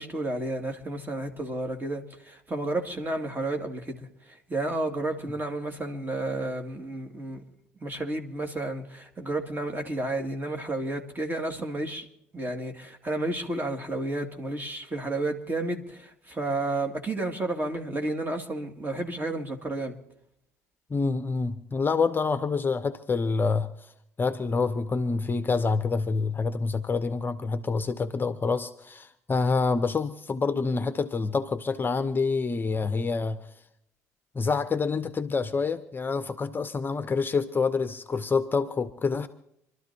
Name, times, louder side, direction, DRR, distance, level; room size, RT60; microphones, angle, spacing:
voice 1, 0.0-7.4 7.8-12.1 12.3-19.9, right 2 dB, 25° right, 2.4 m, -31 dB
voice 2, 20.9-23.9 24.2-33.4 34.3-39.3, left 4 dB, 25° left, 0.8 m, -27 dB
27.0 x 12.5 x 2.9 m
figure-of-eight pair, 55°, 8 cm